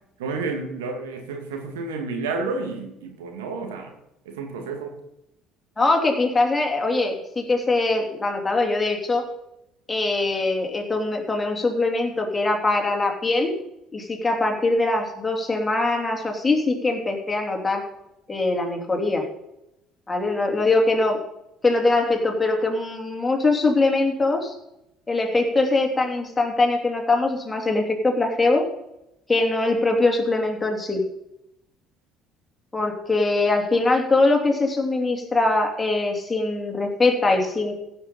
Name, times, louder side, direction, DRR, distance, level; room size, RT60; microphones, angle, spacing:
voice 1, 0.2-3.9 4.3-4.9, right 3 dB, 80° right, 4 dB, 2.1 m, -30 dB
voice 2, 5.8-9.2 9.9-13.5 13.9-17.8 18.3-19.2 20.1-21.2 21.6-24.5 25.1-28.6 29.3-31.0 32.7-37.7, left 2 dB, 20° left, 2 dB, 3.0 m, -22 dB
15.5 x 7.0 x 5.3 m, 0.87 s
hypercardioid pair, 65°, 0 cm